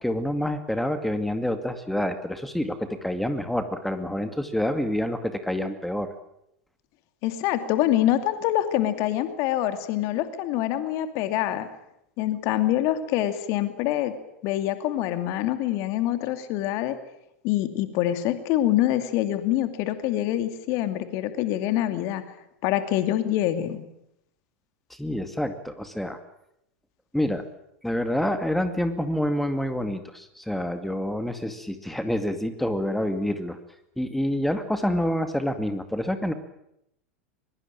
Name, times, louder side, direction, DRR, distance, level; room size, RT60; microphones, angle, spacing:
voice 1, 0.0-6.1 24.9-26.2 27.1-27.4 27.8-33.6 34.0-36.3, left 1 dB, ahead, 9 dB, 2.3 m, -27 dB
voice 2, 7.2-11.7 12.2-14.1 14.4-17.0 17.4-22.2 22.6-23.8, left 13 dB, 45° left, 9 dB, 2.5 m, -25 dB
23.0 x 22.5 x 8.9 m, 0.79 s
figure-of-eight pair, 85°, 7 cm